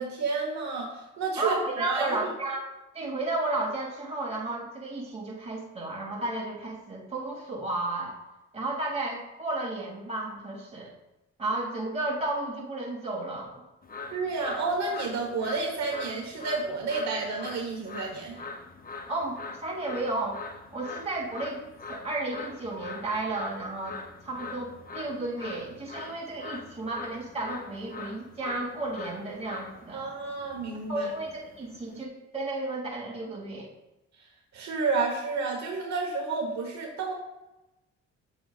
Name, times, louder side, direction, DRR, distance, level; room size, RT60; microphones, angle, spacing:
voice 1, 0.0-2.2 14.1-18.4 29.9-31.1 34.5-37.1, right 4 dB, 65° right, 1 dB, 1.3 m, -30 dB
voice 2, 1.4-2.7 2.9-8.2 8.5-10.9 11.4-13.6 19.1-20.4 20.7-21.6 21.9-24.0 24.2-30.0 30.9-33.7, right 2 dB, 20° right, -3 dB, 2.7 m, -33 dB
sound 1, 13.8-32.0, left 3 dB, 30° left, 0.8 m, -43 dB
8.0 x 7.7 x 2.5 m, 0.99 s
cardioid pair, 90°, 30 cm